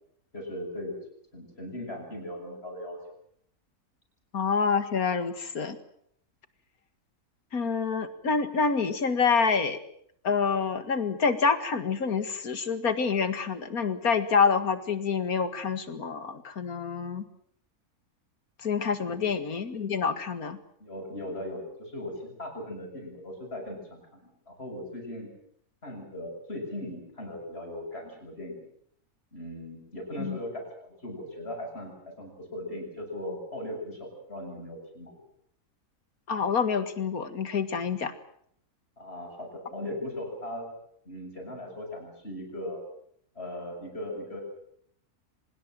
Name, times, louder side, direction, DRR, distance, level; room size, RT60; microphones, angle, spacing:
voice 1, 0.3-0.9 1.3-3.0 19.1-19.2 20.8-25.3 25.8-28.6 29.3-35.1 39.0-40.7 41.1-42.8 43.4-44.4, left 1 dB, 40° left, 1 dB, 7.7 m, -38 dB
voice 2, 4.3-5.8 7.5-9.8 10.2-17.2 18.6-20.6 30.2-30.4 36.3-38.1, left 5 dB, 70° left, 11 dB, 2.3 m, -27 dB
25.0 x 21.5 x 7.7 m, 0.68 s
omnidirectional pair, 1.6 m